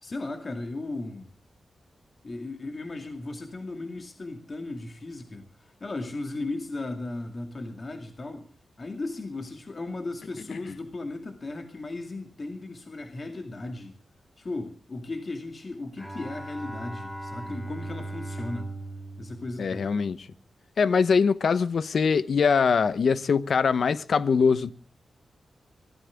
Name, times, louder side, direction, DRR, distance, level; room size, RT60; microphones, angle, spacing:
voice 1, 0.0-1.3 2.2-8.5 8.8-14.0 14.4-18.7 19.2-20.0, left 2 dB, 35° left, 2.3 m, -36 dB
Bowed string instrument, 16.0-20.4, right 1 dB, 10° left, 3.4 m, -39 dB
voice 2, 19.6-20.2 20.8-24.7, left 5 dB, 60° left, 0.9 m, -22 dB
24.5 x 16.5 x 3.6 m
wide cardioid pair, 150°, 0 cm